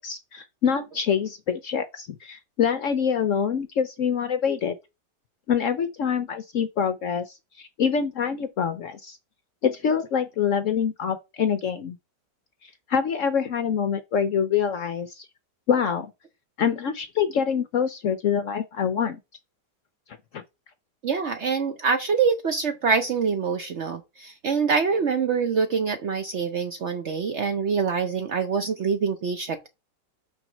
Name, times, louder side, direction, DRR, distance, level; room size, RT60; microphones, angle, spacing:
voice 1, 0.0-4.7 5.5-9.2 9.6-12.0 12.6-15.3 15.7-16.1 16.6-19.2 20.3-20.4, left 7 dB, 65° left, 0.8 m, -25 dB
voice 2, 21.0-29.7, right 5 dB, 60° right, 0.8 m, -25 dB
6.1 x 4.0 x 6.2 m
omnidirectional pair, 1.8 m